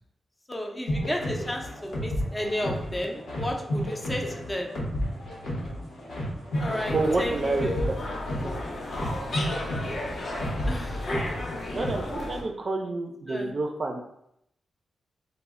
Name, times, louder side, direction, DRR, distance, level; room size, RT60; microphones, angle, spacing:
voice 1, 0.5-4.7 6.6-7.9 10.7-11.2 13.3-13.5, left 1 dB, 25° left, 1 dB, 0.5 m, -32 dB
sound 1, 0.9-12.2, equal, 85° left, 0.9 m, -32 dB
sound 2, 6.5-12.4, left 1 dB, 70° left, 0.5 m, -34 dB
voice 2, 6.9-8.0 8.4-8.6 11.7-14.0, right 3 dB, 50° right, 3 dB, 0.4 m, -29 dB
2.1 x 2.0 x 3.5 m, 0.75 s
cardioid pair, 70°, 0 cm